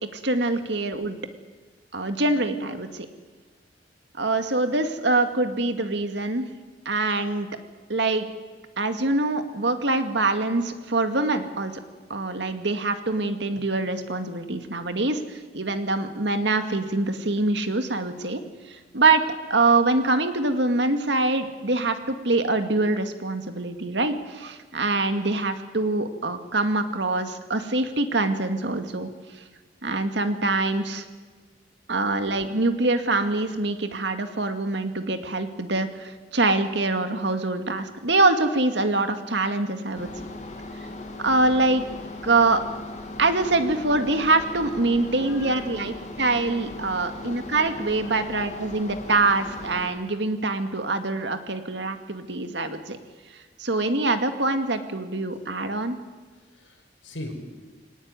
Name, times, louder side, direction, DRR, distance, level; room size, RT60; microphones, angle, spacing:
voice 1, 0.1-1.2 1.9-3.1 4.2-6.5 6.9-7.5 7.9-8.3 8.8-11.8 12.1-18.4 18.7-19.2 19.5-29.4 29.8-31.1 31.9-40.1 41.2-41.8 42.2-42.6 43.2-53.0 53.6-56.0, right 2 dB, 65° right, 8 dB, 2.2 m, -24 dB
sound 1, 39.9-49.9, left 2 dB, 35° left, 2.9 m, -38 dB
voice 2, 45.1-45.7 48.0-48.3 56.3-57.3, left 1 dB, 85° left, 4 dB, 5.1 m, -42 dB
23.0 x 19.0 x 9.6 m, 1.4 s
head